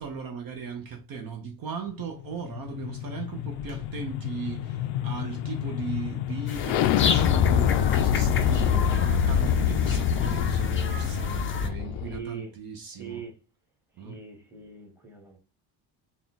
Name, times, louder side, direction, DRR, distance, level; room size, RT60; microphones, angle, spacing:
voice 1, 0.0-13.2 14.0-14.2, right 5 dB, 50° right, 0.7 m, -37 dB
sound 1, 2.0-12.2, left 9 dB, 85° left, 0.5 m, -26 dB
sound 2, 6.5-11.7, left 4 dB, 30° left, 0.4 m, -33 dB
voice 2, 12.0-12.5 13.0-13.3 14.0-15.4, right 5 dB, 5° right, 1.0 m, -41 dB
3.6 x 2.3 x 4.0 m
cardioid pair, 165°, 46 cm